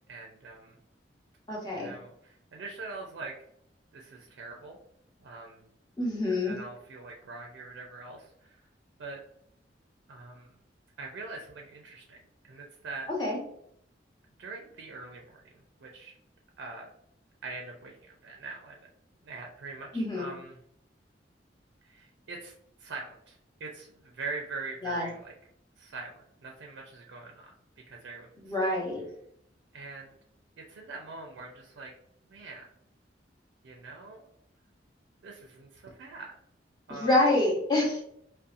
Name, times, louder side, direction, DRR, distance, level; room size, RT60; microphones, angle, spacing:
voice 1, 0.1-0.8 1.7-3.3 3.9-4.8 5.2-5.6 6.3-8.6 9.0-9.2 10.1-10.5 11.0-12.2 12.5-13.1 14.4-16.2 16.6-16.9 17.4-17.9 18.2-18.8 19.2-20.6 21.8-22.5 22.8-25.4 25.8-27.5 27.9-28.5 29.7-30.1 30.7-31.9 32.3-32.7 33.6-34.3 35.2-36.3 36.9-37.1, right 3 dB, 80° right, 1 dB, 0.4 m, -43 dB
voice 2, 1.5-1.9 6.0-6.6 13.2-13.4 19.9-20.3 24.8-25.1 28.4-29.0 37.0-38.0, left 2 dB, 25° left, -3 dB, 0.8 m, -27 dB
2.7 x 2.1 x 2.5 m, 0.72 s
head